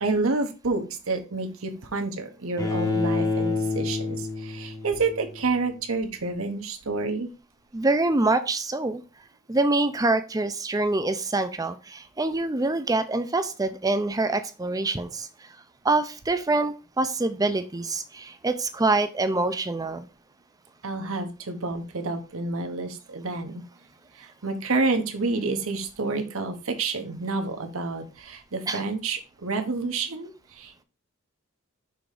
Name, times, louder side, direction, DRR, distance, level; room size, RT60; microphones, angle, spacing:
voice 1, 0.0-7.3 20.8-23.6 24.1-30.8, right 3 dB, 70° right, 5 dB, 1.0 m, -29 dB
Bowed string instrument, 2.6-5.6, left 3 dB, 15° left, 0.9 m, -28 dB
voice 2, 7.7-9.0 9.5-15.3 15.8-20.1 28.7-28.8, right 2 dB, 15° right, 10 dB, 0.5 m, -25 dB
6.1 x 3.6 x 5.0 m, 0.32 s
head